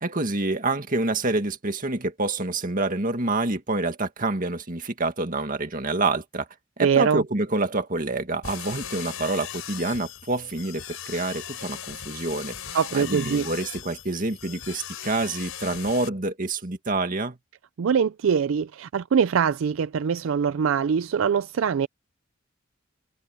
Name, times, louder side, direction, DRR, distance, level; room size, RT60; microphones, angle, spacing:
voice 1, 0.0-6.5 6.8-17.4, right 2 dB, 40° right, 2.0 m, -27 dB
voice 2, 6.8-7.2 12.7-13.5 17.8-21.9, right 7 dB, 70° right, 0.4 m, -23 dB
sound 1, 8.4-16.1, left 9 dB, 85° left, 4.5 m, -38 dB
head